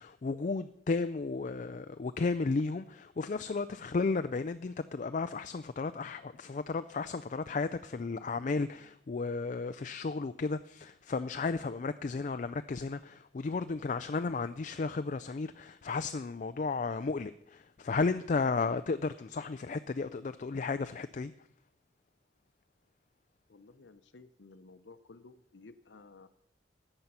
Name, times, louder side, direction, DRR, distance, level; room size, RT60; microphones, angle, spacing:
voice 1, 0.0-21.3, left 4 dB, 45° left, 0.4 m, -34 dB
voice 2, 23.5-26.3, left 3 dB, 85° left, 0.7 m, -55 dB
14.0 x 8.9 x 5.6 m
head